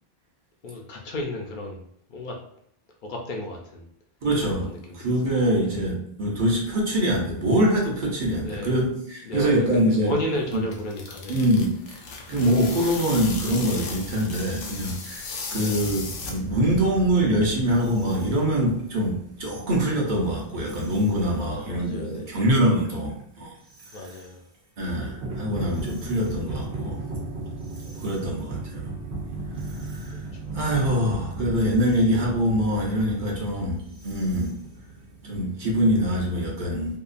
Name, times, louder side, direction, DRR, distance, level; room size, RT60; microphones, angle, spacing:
voice 1, 0.6-1.8 2.1-2.4 3.0-3.8 4.6-5.0 5.6-5.8 8.4-8.8 9.2-11.4 12.2-12.3 15.5-15.8 21.4-22.4 23.9-24.4 27.8-28.0 30.1-30.5, left 1 dB, 60° left, 0 dB, 0.6 m, -33 dB
voice 2, 4.2-4.7 4.9-10.1 10.5-10.6 11.3-11.8 12.3-23.5 24.8-26.9 28.0-28.8 29.9-30.1 30.5-34.5 35.2-37.0, equal, 55° right, -3 dB, 0.8 m, -24 dB
sound 1, 10.3-16.7, left 3 dB, 85° left, 0.8 m, -36 dB
sound 2, 15.8-20.1 20.5-21.1 21.5-21.9 22.4-24.3 24.8-35.6, right 2 dB, 85° right, 1.0 m, -37 dB
2.8 x 2.3 x 2.4 m, 0.71 s
omnidirectional pair, 1.0 m